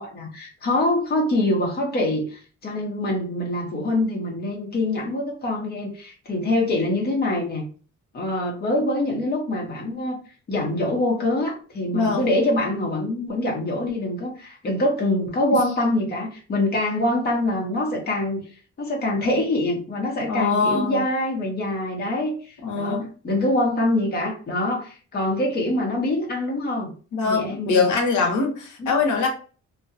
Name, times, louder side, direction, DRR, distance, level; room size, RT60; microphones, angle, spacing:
voice 1, 0.0-7.7 8.1-10.2 10.5-18.4 18.8-26.9 27.2-27.9 28.8-28.9, left 1 dB, 35° left, 0 dB, 0.8 m, -24 dB
voice 2, 11.9-12.3 20.3-21.0 22.6-23.1 27.1-29.3, left 4 dB, 80° left, 2 dB, 0.8 m, -22 dB
2.7 x 2.2 x 2.5 m, 0.38 s
cardioid pair, 150°, 30 cm